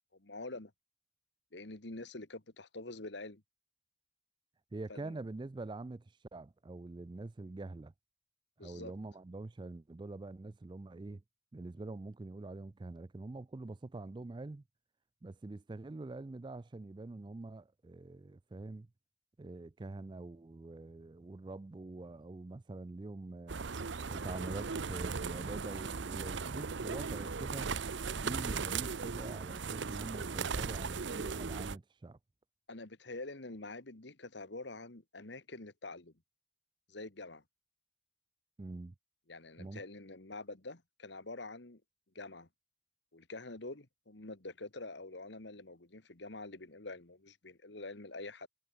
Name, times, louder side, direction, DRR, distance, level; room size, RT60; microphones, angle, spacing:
voice 1, 0.1-0.7 1.5-3.4 4.9-5.2 8.6-8.9 32.7-36.1 36.9-37.4 39.3-41.8 42.2-42.5 43.1-48.5, left 2 dB, 65° left, 1.8 m, -46 dB
voice 2, 4.7-7.9 8.6-11.2 11.5-14.6 15.2-18.9 19.4-23.6 24.1-27.7 28.1-32.2 38.6-38.9 39.6-39.8, right 2 dB, 25° right, 0.4 m, -45 dB
sound 1, 23.5-31.8, right 5 dB, 70° right, 0.7 m, -38 dB
head